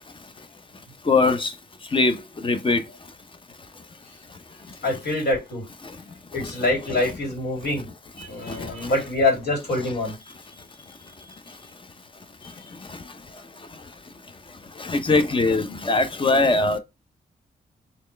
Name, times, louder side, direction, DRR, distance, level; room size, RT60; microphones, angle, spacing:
voice 1, 1.1-1.5 1.9-2.2 2.4-2.8 14.8-16.8, left 3 dB, 30° left, 0.6 m, -20 dB
voice 2, 4.8-5.6 6.3-7.8 8.2-10.1 12.4-12.5, left 2 dB, 70° left, 2.7 m, -25 dB
4.1 x 3.2 x 3.2 m
wide cardioid pair, 115°, 17 cm